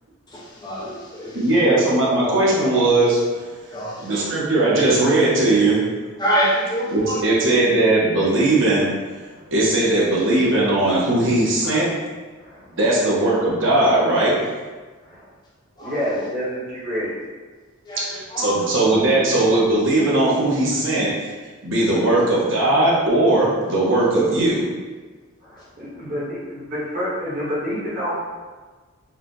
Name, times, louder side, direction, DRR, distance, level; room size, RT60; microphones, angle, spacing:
voice 1, 0.3-1.5 3.7-4.2 6.2-7.3 11.6-11.8 15.8-16.3 17.9-18.7 21.0-21.1, equal, 20° left, -5 dB, 0.5 m, -26 dB
voice 2, 1.3-3.2 4.0-5.8 6.9-8.9 9.5-11.9 12.7-14.3 18.4-21.1 21.6-24.6, right 2 dB, 60° right, -6 dB, 1.0 m, -18 dB
voice 3, 15.8-17.1 25.4-28.2, equal, 40° right, -8 dB, 1.4 m, -28 dB
4.2 x 2.5 x 3.8 m, 1.4 s
head